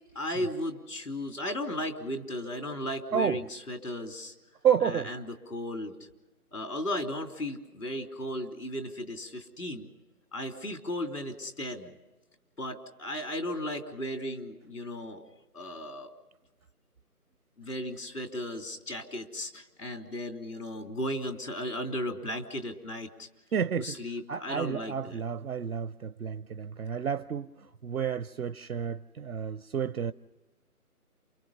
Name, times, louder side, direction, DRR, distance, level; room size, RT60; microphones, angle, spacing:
voice 1, 0.2-4.3 4.8-5.9 6.5-9.9 10.3-11.9 12.6-15.2 15.5-16.1 17.6-23.3 23.8-25.2, left 1 dB, 75° left, 3.4 m, -35 dB
voice 2, 4.6-5.1 23.5-24.0 24.3-27.5 27.8-30.1, right 8 dB, 65° right, 0.7 m, -30 dB
28.5 x 24.5 x 5.6 m
figure-of-eight pair, 170°, 45 cm